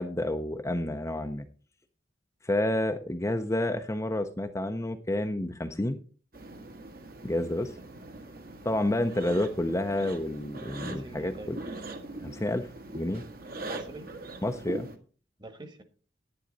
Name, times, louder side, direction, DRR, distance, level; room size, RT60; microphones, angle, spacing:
voice 1, 0.0-1.4 2.4-6.0 7.2-7.7 8.6-11.6 12.2-12.7 12.9-13.2 14.4-14.9, left 1 dB, 15° left, 6 dB, 0.6 m, -29 dB
sound 1, 6.3-15.0, right 2 dB, 55° right, 1.4 m, -42 dB
voice 2, 10.8-11.5 13.5-14.1 15.4-15.8, right 2 dB, 25° right, 8 dB, 1.4 m, -45 dB
10.5 x 9.3 x 4.0 m, 0.40 s
head